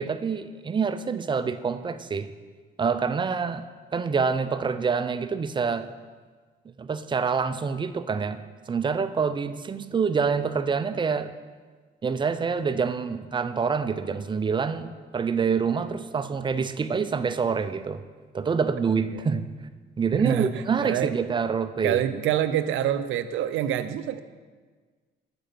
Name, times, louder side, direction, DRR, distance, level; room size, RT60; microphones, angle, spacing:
voice 1, 0.0-2.3 2.8-3.7 3.9-5.9 6.8-8.4 8.7-11.3 12.0-18.0 18.3-19.5 20.0-22.0, right 5 dB, 25° right, 12 dB, 0.4 m, -26 dB
voice 2, 20.8-21.1 21.8-24.2, right 10 dB, 80° right, 11 dB, 0.5 m, -26 dB
6.5 x 4.5 x 6.7 m, 1.5 s
cardioid pair, 90°, 20 cm